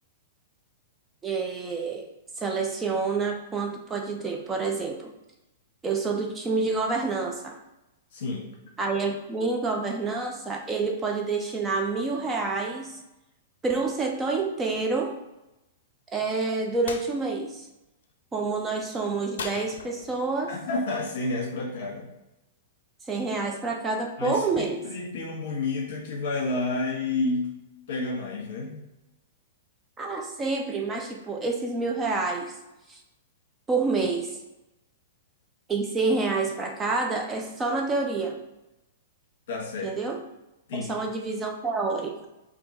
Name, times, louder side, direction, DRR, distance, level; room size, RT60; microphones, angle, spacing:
voice 1, 1.2-2.0 2.4-5.1 5.8-7.6 8.8-13.0 13.6-15.1 16.1-17.7 18.3-20.5 23.1-24.9 30.0-32.5 32.9-33.0 33.7-34.4 35.7-38.3 39.8-40.2 40.7-42.3, right 3 dB, 10° right, 2 dB, 0.3 m, -28 dB
voice 2, 8.1-8.5 20.5-22.1 24.2-27.5 27.9-28.8 39.5-39.9 40.7-41.0, left 3 dB, 55° left, -1 dB, 1.6 m, -30 dB
sound 1, 16.9-17.1 19.4-20.3, left 6 dB, 75° left, 0.5 m, -38 dB
4.3 x 2.7 x 4.3 m, 0.96 s
supercardioid pair, 165°, 0 cm